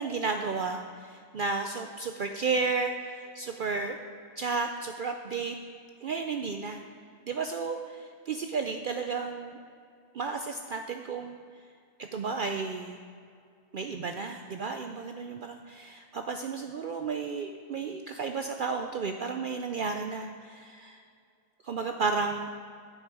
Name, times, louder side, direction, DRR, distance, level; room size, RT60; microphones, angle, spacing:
voice 1, 0.0-4.0 4.4-5.6 6.0-6.8 7.3-9.6 10.1-11.4 12.0-13.0 13.7-21.0 21.6-22.5, right 4 dB, 80° right, 5 dB, 0.4 m, -33 dB
9.9 x 8.0 x 4.7 m, 2.3 s
omnidirectional pair, 1.4 m